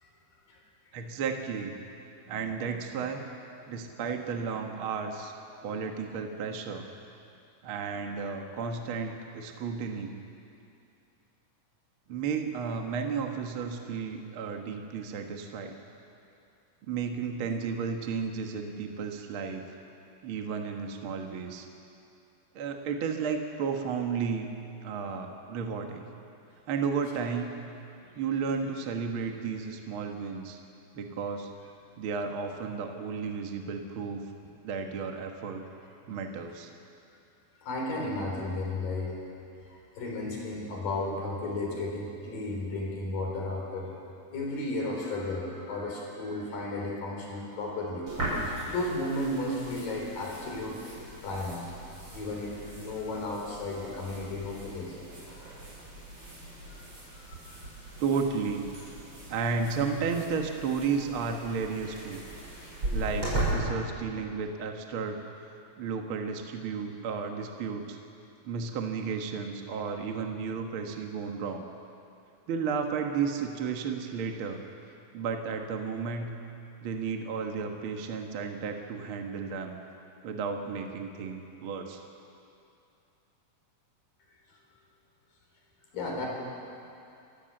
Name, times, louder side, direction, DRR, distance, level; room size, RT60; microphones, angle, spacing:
voice 1, 0.9-1.8 2.3-3.2 3.7-5.3 5.6-6.9 7.6-10.1 12.1-15.8 16.9-19.6 20.2-21.7 22.5-24.5 24.8-26.0 26.7-27.5 28.2-30.6 30.9-31.5 32.0-34.2 34.6-35.6 36.1-36.7 58.0-58.7 59.3-62.2 62.9-65.2 65.8-68.0 68.4-71.7 72.5-74.6 75.1-76.4 76.8-79.8 80.2-82.0, right 5 dB, 65° right, 3 dB, 1.3 m, -33 dB
voice 2, 37.6-39.2 39.7-44.0 44.3-51.0 51.2-51.8 52.1-55.0 56.8-56.9 57.2-57.7 85.9-86.3, left 2 dB, 65° left, -1 dB, 5.8 m, -34 dB
sound 1, 48.1-63.5, right 2 dB, 30° right, 7.2 m, -39 dB
28.0 x 15.0 x 7.7 m, 2.6 s
omnidirectional pair, 4.4 m